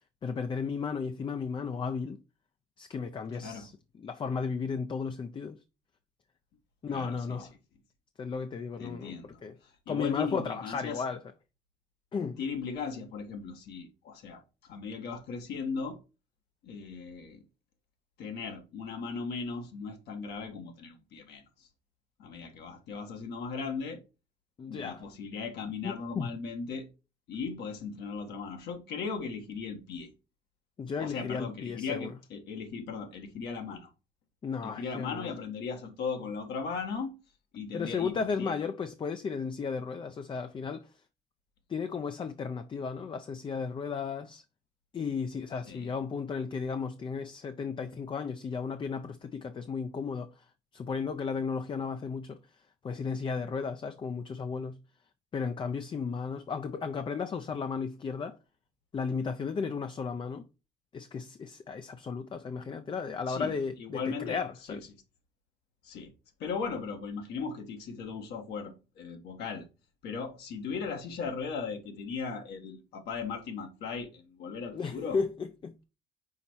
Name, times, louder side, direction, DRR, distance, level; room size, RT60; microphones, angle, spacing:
voice 1, 0.2-2.2 2.8-3.7 4.0-5.6 6.8-7.5 8.2-9.6 9.9-11.2 12.1-12.4 24.6-25.0 25.8-26.3 30.8-32.1 34.4-35.3 37.7-40.9 41.7-44.4 44.9-54.8 55.3-58.4 58.9-60.5 60.9-64.8 74.7-75.8, left 5 dB, 30° left, 0.5 m, -34 dB
voice 2, 3.3-3.7 6.9-7.4 8.8-11.0 12.4-14.4 14.7-16.0 16.6-17.4 18.2-21.7 22.2-24.0 24.7-26.9 27.3-30.1 31.0-33.9 34.6-37.1 37.5-38.5 45.7-45.9 63.3-63.5 63.8-64.4 64.7-64.8 65.8-66.1 66.4-69.6 70.0-75.2, left 5 dB, 75° left, 1.4 m, -37 dB
5.7 x 4.1 x 4.5 m
cardioid pair, 110°, 17 cm